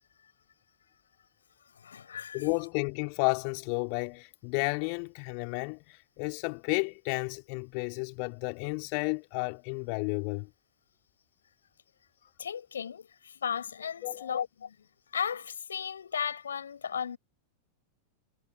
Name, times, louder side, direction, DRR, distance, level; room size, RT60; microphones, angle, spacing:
voice 1, 1.7-2.5 12.4-14.8 15.1-17.2, left 7 dB, 70° left, 7.7 m, -35 dB
voice 2, 2.3-10.5 14.0-14.4, left 40 dB or more, 45° left, 3.5 m, -32 dB
figure-of-eight pair, 90°, 0 cm